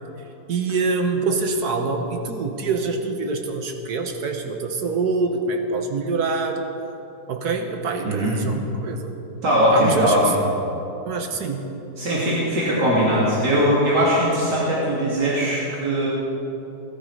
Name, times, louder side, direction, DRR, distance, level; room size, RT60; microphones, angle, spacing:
voice 1, 0.5-6.7 7.3-9.1 9.7-10.2 11.1-11.7, right 4 dB, 70° right, 4 dB, 1.8 m, -25 dB
voice 2, 9.4-10.2 12.0-16.1, equal, 90° right, -7 dB, 3.6 m, -20 dB
19.5 x 12.5 x 5.0 m, 3.0 s
omnidirectional pair, 1.8 m